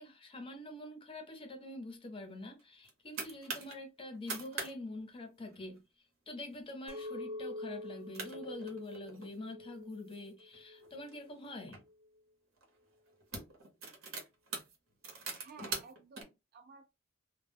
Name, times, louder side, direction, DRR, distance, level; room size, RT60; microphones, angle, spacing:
voice 1, 0.0-5.8 6.3-11.8 15.6-15.7, left 1 dB, 25° left, 0.6 m, -45 dB
sound 1, 2.6-3.8 4.1-4.7 5.0-5.1 5.4-5.8 6.3-6.6 7.0-7.1 7.8-7.9 8.1-9.3 9.9-11.8 12.6-12.8 13.1-16.2, right 4 dB, 75° right, 0.8 m, -43 dB
Chink clink, 6.9-12.1, left 2 dB, 10° right, 0.8 m, -46 dB
voice 2, 15.3-17.0, right 5 dB, 50° right, 0.3 m, -55 dB
2.1 x 2.0 x 3.3 m
head